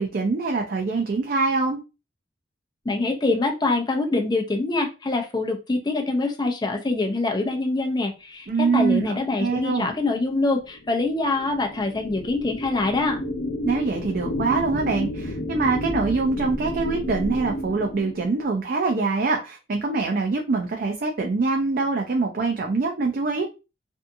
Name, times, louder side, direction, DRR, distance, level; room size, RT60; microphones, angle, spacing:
voice 1, 0.0-1.8 8.5-9.9 13.6-23.5, right 3 dB, 50° right, 2 dB, 0.4 m, -24 dB
voice 2, 2.9-13.2, left 2 dB, 25° left, 3 dB, 0.5 m, -24 dB
sound 1, 9.8-18.6, equal, 65° left, 0.8 m, -32 dB
2.6 x 2.4 x 2.6 m, 0.29 s
head